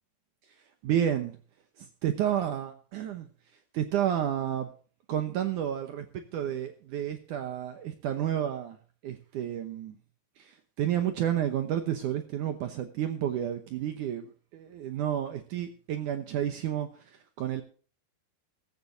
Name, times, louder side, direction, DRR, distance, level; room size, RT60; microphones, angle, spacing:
voice 1, 0.8-1.4 1.8-3.3 3.7-4.7 5.1-8.8 9.0-10.0 10.4-16.9 17.4-17.6, right 10 dB, 70° right, 2.0 m, -31 dB
16.0 x 14.5 x 2.7 m
omnidirectional pair, 4.7 m